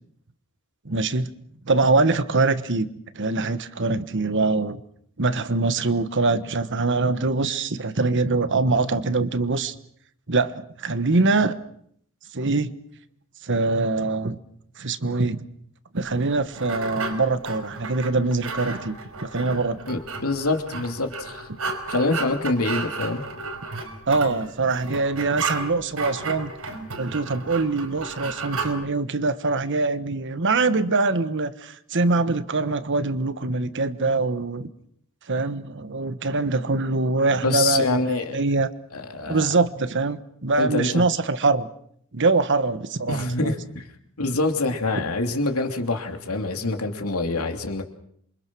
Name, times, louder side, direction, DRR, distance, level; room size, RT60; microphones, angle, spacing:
voice 1, 0.8-1.3 1.6-2.9 3.1-4.8 5.2-9.7 10.3-11.6 12.3-12.7 13.4-14.4 14.8-15.5 15.9-19.8 24.1-26.5 27.0-34.7 35.3-38.7 39.3-41.7 42.1-43.5, right 3 dB, 55° right, 12 dB, 1.3 m, -23 dB
sound 1, 16.0-28.7, right 4 dB, 75° right, 5.0 m, -33 dB
voice 2, 19.9-21.5 21.9-23.2 37.4-38.4 38.9-39.5 40.6-41.0 43.1-43.9 44.2-47.9, left 2 dB, 75° left, 5 dB, 3.1 m, -25 dB
27.5 x 24.5 x 6.2 m, 0.67 s
head